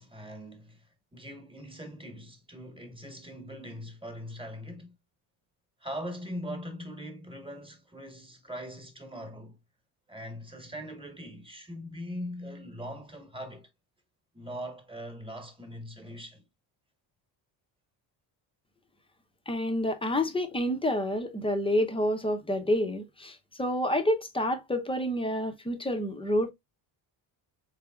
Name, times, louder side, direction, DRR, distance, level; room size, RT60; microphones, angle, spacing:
voice 1, 0.0-5.0 5.8-9.6 10.1-13.7 14.3-16.4, equal, 10° right, 1.3 m, -41 dB
voice 2, 19.5-26.5, left 1 dB, 10° left, 0.7 m, -28 dB
4.0 x 3.5 x 2.4 m
cardioid pair, 90°, 47 cm